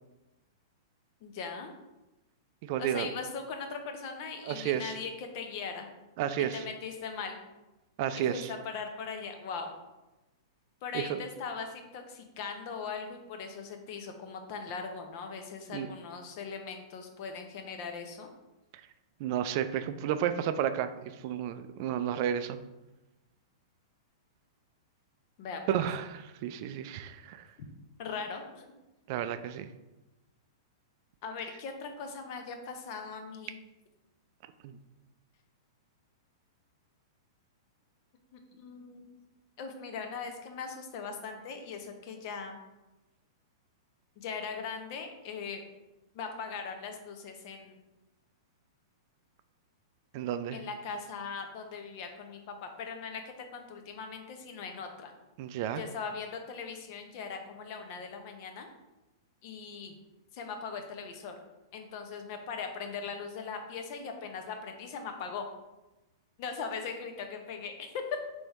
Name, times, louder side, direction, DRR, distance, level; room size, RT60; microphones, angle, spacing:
voice 1, 1.2-1.7 2.8-5.9 6.5-7.4 8.1-9.7 10.8-18.3 25.4-25.9 28.0-28.7 31.2-33.6 38.3-39.1 39.6-42.6 44.2-45.6 46.1-47.8 50.5-52.4 52.8-53.2 53.5-55.1 55.8-58.7 59.4-59.9 60.3-61.3 61.7-65.5 66.4-68.2, left 5 dB, 50° left, 5 dB, 0.8 m, -40 dB
voice 2, 2.6-3.1 4.5-4.9 6.2-6.6 8.0-8.5 10.9-11.2 15.7-15.9 18.7-18.8 19.2-20.9 21.2-22.6 25.7-27.5 29.1-29.7 34.6-34.8 50.1-50.6 55.4-55.8, right 10 dB, 50° right, 11 dB, 0.3 m, -32 dB
3.5 x 3.3 x 4.1 m, 1.0 s
hypercardioid pair, 115°, 2 cm